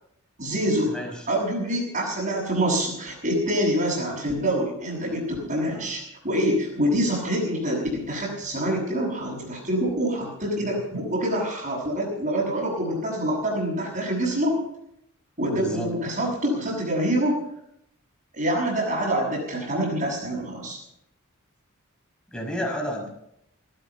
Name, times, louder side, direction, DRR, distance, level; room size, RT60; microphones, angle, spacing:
voice 1, 0.4-0.9 1.3-14.6 15.4-17.4 18.3-20.8, equal, 40° right, -8 dB, 6.4 m, -26 dB
voice 2, 15.5-15.9 22.3-23.1, equal, 5° left, 0 dB, 5.4 m, -31 dB
18.5 x 12.5 x 5.8 m, 0.77 s
head